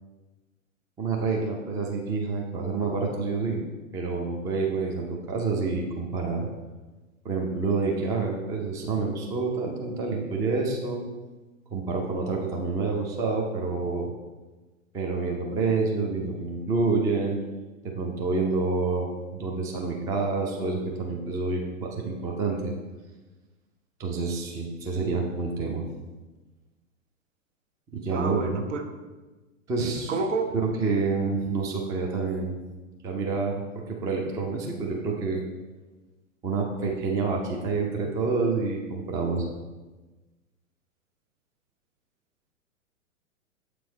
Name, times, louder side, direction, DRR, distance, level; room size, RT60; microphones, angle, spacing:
voice 1, 1.0-3.6 3.9-6.5 7.2-11.0 11.7-14.1 14.9-17.4 17.8-22.7 24.0-25.9 27.9-28.6 29.7-30.2 30.5-32.6 33.0-35.4 36.4-39.5, right 4 dB, 10° right, 0 dB, 0.4 m, -28 dB
voice 2, 28.1-28.8 30.1-30.5, right 4 dB, 65° right, 5 dB, 1.0 m, -28 dB
7.5 x 4.6 x 4.0 m, 1.2 s
figure-of-eight pair, 105°, 40 cm